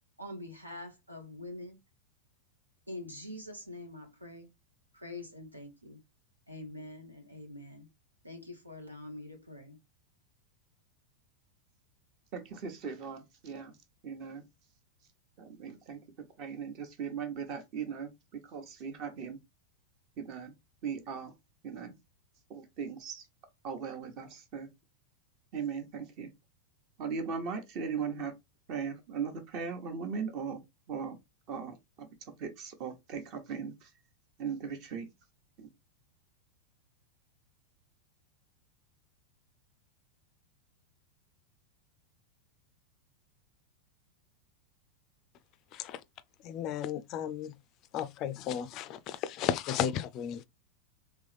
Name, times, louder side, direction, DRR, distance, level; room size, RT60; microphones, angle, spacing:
voice 1, 0.2-1.8 2.9-4.5 4.9-6.0 6.5-7.9 8.2-9.8, left 1 dB, 85° right, 1.1 m, -45 dB
voice 2, 12.3-13.8 14.0-14.4 15.4-16.0 16.4-19.4 20.2-20.5 20.8-21.3 21.6-21.9 22.5-23.2 23.6-24.7 25.5-26.3 27.0-28.3 28.7-30.6 30.9-31.2 31.5-32.1 32.4-33.9 34.4-35.1 35.6-35.7, right 6 dB, 40° right, 1.0 m, -38 dB
voice 3, 46.4-47.5 47.9-50.4, left 9 dB, 35° left, 0.3 m, -34 dB
3.7 x 3.1 x 3.3 m
figure-of-eight pair, 90°, 0 cm